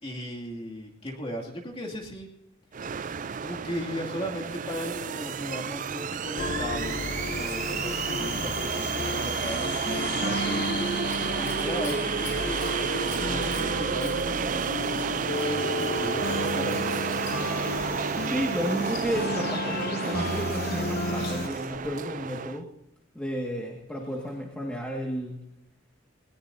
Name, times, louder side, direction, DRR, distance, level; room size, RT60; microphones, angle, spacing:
voice 1, 0.0-2.3 3.4-10.6 11.3-12.6 13.2-14.7 15.1-17.0, equal, 30° left, -1 dB, 2.4 m, -37 dB
sound 1, 2.7-22.6, right 6 dB, 40° right, 0.4 m, -31 dB
sound 2, 6.4-21.5, left 2 dB, 50° left, 0.9 m, -32 dB
Scissors, 10.5-21.9 23.8-24.4 25.1-25.2, left 5 dB, 75° left, 6.3 m, -48 dB
voice 2, 18.2-22.7 23.2-25.5, equal, 5° left, -1 dB, 1.8 m, -32 dB
20.0 x 19.0 x 2.7 m, 0.87 s
head